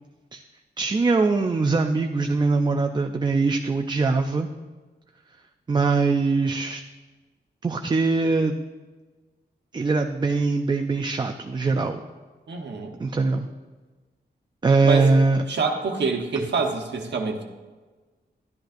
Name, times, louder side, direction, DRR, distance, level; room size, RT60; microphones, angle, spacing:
voice 1, 0.8-4.5 5.7-6.8 7.6-8.5 9.7-12.0 13.0-13.5 14.6-15.4, right 3 dB, 25° right, 5 dB, 0.4 m, -22 dB
voice 2, 12.5-12.9 14.8-15.1 15.5-17.4, right 4 dB, 85° right, 2 dB, 1.1 m, -26 dB
12.0 x 10.5 x 2.5 m, 1.3 s
wide cardioid pair, 145°, 18 cm